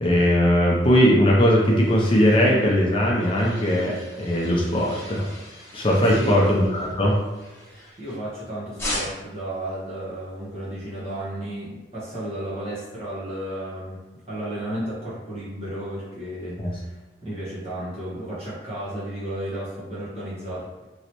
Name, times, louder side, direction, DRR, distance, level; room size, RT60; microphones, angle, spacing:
voice 1, 0.0-5.2 5.7-7.2 16.6-16.7, equal, 30° left, -3 dB, 0.5 m, -19 dB
sound 1, 1.0-8.4 8.8-9.4, left 1 dB, 15° left, 1.0 m, -39 dB
voice 2, 6.1-6.5 7.6-14.0 14.3-20.8, right 1 dB, 35° right, -10 dB, 1.0 m, -33 dB
3.1 x 2.8 x 2.9 m, 1.1 s
head